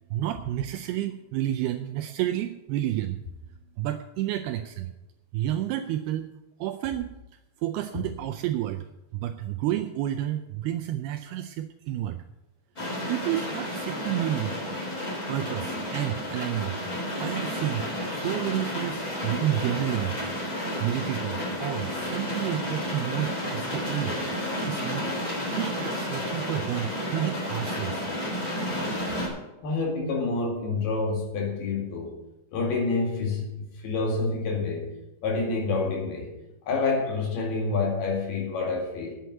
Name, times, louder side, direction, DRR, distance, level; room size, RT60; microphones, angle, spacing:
voice 1, 0.1-3.2 3.8-4.9 5.3-6.3 6.6-7.1 7.6-8.9 9.1-12.2 13.1-14.6 14.9-16.8 17.2-20.2 20.5-24.2 24.7-25.1 25.6-28.1, right 12 dB, 80° right, 7 dB, 2.3 m, -30 dB
sound 1, 12.8-29.3, left 1 dB, 20° left, 3.8 m, -31 dB
voice 2, 29.6-32.2 32.5-34.9 35.2-36.3 36.7-39.2, left 3 dB, 65° left, 0 dB, 4.1 m, -28 dB
9.2 x 7.9 x 9.0 m, 0.96 s
omnidirectional pair, 5.0 m